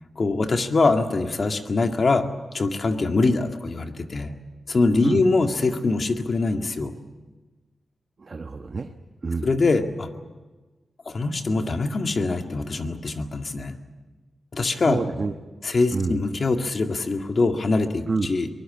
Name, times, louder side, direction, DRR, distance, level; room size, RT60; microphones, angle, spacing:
voice 1, 0.2-2.3 2.5-4.3 4.7-6.9 9.4-10.1 11.1-13.8 14.5-15.0 15.6-18.5, left 3 dB, 50° left, 5 dB, 2.0 m, -23 dB
voice 2, 8.2-8.9 9.2-9.5 14.7-15.3 15.9-16.2 18.1-18.3, right 4 dB, 50° right, 6 dB, 1.2 m, -27 dB
23.5 x 20.0 x 8.7 m, 1.2 s
cardioid pair, 70°, 0 cm